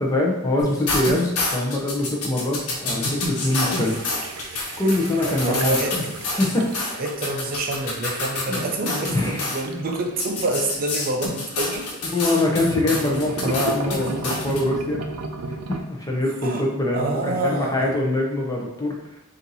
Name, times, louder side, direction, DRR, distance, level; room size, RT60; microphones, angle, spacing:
voice 1, 0.0-4.0 4.8-5.8 6.4-7.0 8.5-8.8 9.1-9.5 12.1-15.0 15.7-19.2, left 1 dB, 15° left, -1 dB, 0.7 m, -24 dB
sound 1, 0.6-9.6 10.2-14.6, left 2 dB, 80° left, 1.1 m, -28 dB
sound 2, 3.7-11.7 12.6-15.8, right 3 dB, 85° right, 0.5 m, -35 dB
voice 2, 5.2-5.9 7.0-11.9 16.4-16.7 16.9-18.0, right 2 dB, 40° right, 1 dB, 0.5 m, -27 dB
4.4 x 2.6 x 4.0 m, 0.96 s
head